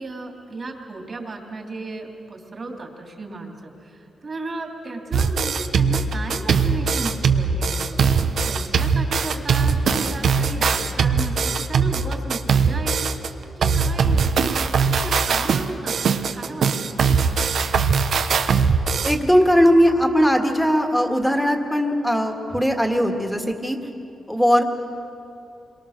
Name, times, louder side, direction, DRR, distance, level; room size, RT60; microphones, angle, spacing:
voice 1, 0.0-8.0 8.4-13.1 13.5-17.2, right 2 dB, 35° right, 2 dB, 3.0 m, -35 dB
sound 1, 5.1-13.3 13.6-19.1, right 5 dB, 65° right, 1.1 m, -20 dB
voice 2, 19.0-23.8 24.3-24.6, equal, ahead, 4 dB, 1.8 m, -19 dB
28.5 x 23.0 x 6.6 m, 2.7 s
wide cardioid pair, 140°, 0 cm